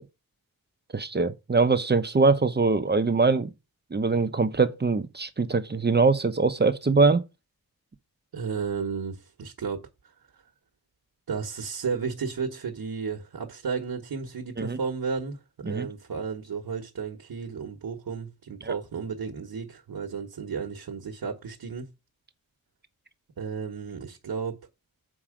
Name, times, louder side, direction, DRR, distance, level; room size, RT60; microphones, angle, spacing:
voice 1, 0.9-3.5 3.9-7.2 14.6-14.8 15.6-15.9 18.6-18.7, right 4 dB, 30° right, 0.8 m, -23 dB
voice 2, 8.3-10.1 11.3-21.9 23.4-24.6, right 5 dB, 80° right, 1.4 m, -33 dB
7.5 x 4.8 x 5.0 m
wide cardioid pair, 115°, 36 cm